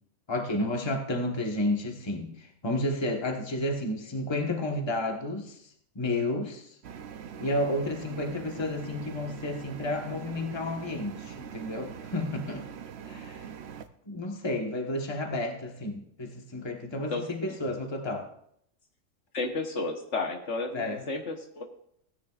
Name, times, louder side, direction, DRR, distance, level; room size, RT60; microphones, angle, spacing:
voice 1, 0.3-5.6 5.9-6.7 7.4-12.6 13.1-13.4 14.1-18.3 20.7-21.0, left 1 dB, 20° left, 1.2 m, -31 dB
sound 1, 6.8-13.9, right 8 dB, 60° right, 0.8 m, -42 dB
voice 2, 17.1-17.5 19.3-21.6, left 3 dB, 60° left, 1.4 m, -32 dB
16.5 x 10.0 x 2.4 m
omnidirectional pair, 1.4 m